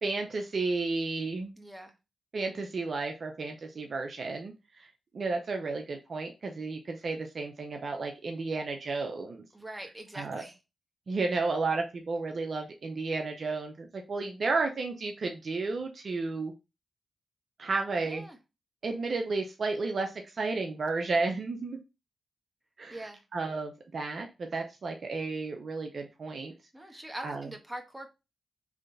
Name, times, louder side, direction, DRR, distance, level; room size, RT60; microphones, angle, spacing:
voice 1, 0.0-1.5 2.3-4.9 5.1-9.4 10.1-10.4 11.1-16.5 17.6-18.2 18.8-21.8 22.8-26.5 27.2-27.5, right 3 dB, 60° right, 3 dB, 0.7 m, -32 dB
voice 2, 1.6-1.9 9.5-10.6 18.0-18.4 22.9-23.2 26.7-28.1, right 1 dB, 15° right, 3 dB, 1.4 m, -43 dB
3.7 x 3.3 x 3.9 m, 0.27 s
supercardioid pair, 45°, 0 cm